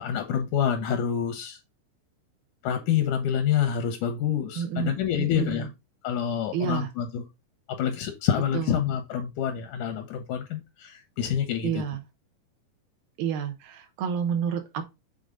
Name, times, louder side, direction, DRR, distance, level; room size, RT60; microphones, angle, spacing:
voice 1, 0.0-1.6 2.6-5.7 6.0-7.2 7.7-11.8, left 9 dB, 80° left, 1.8 m, -27 dB
voice 2, 4.6-5.7 6.5-6.9 8.5-8.9 11.6-12.0 13.2-14.8, right 7 dB, 90° right, 2.8 m, -30 dB
6.9 x 3.8 x 3.7 m
omnidirectional pair, 4.3 m